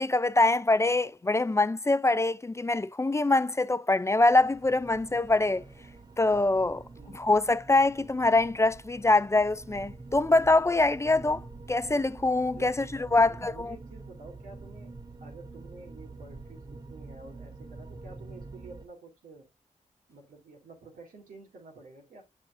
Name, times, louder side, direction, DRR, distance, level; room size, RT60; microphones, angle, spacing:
voice 1, 0.0-5.6 6.2-6.8 7.1-11.4 11.7-13.8, left 2 dB, 20° left, 0.4 m, -24 dB
sound 1, 4.3-18.9, right 3 dB, 30° right, 0.7 m, -46 dB
voice 2, 6.9-7.3 12.5-19.5 20.1-22.2, right 3 dB, 85° right, 2.5 m, -50 dB
7.2 x 6.2 x 2.6 m
cardioid pair, 55°, 14 cm